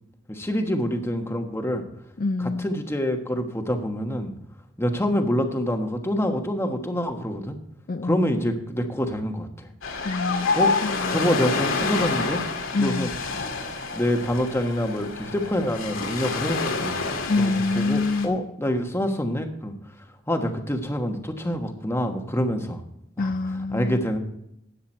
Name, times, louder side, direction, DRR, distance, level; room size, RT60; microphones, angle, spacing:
voice 1, 0.3-1.8 2.4-4.3 4.8-7.6 8.0-9.7 10.6-10.7 11.1-12.4 12.8-13.1 13.9-17.0 17.4-19.7 20.3-22.8 23.2-23.3 23.7-24.2, equal, 10° left, 1.3 m, -26 dB
voice 2, 2.2-2.7 7.9-8.2 10.0-11.4 12.7-13.1 17.3-18.4 23.2-24.1, left 3 dB, 40° left, 0.4 m, -26 dB
Ocean, 9.8-18.3, left 4 dB, 85° left, 2.0 m, -28 dB
13.5 x 9.6 x 4.4 m
head